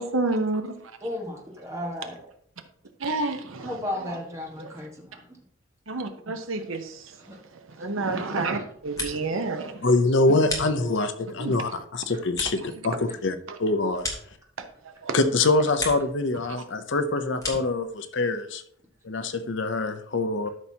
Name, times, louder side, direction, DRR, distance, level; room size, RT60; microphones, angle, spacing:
voice 1, 0.0-0.6 1.8-1.9 3.0-3.7 5.9-7.0 7.8-9.9 10.3-10.4 11.4-11.6 15.0-15.2, right 3 dB, 70° right, 7 dB, 0.9 m, -29 dB
voice 2, 1.0-2.2 3.6-5.4 7.2-7.4 7.8-8.6 9.9-10.0, left 1 dB, 15° right, -1 dB, 1.5 m, -35 dB
sound 1, 8.6-9.5 9.8-11.2 11.6-14.9 15.3-16.2 16.5-17.8, left 2 dB, 15° left, 1.5 m, -37 dB
voice 3, 9.8-14.0 15.1-18.6 19.0-20.5, left 2 dB, 55° left, 9 dB, 0.6 m, -24 dB
12.5 x 5.8 x 2.8 m, 0.67 s
head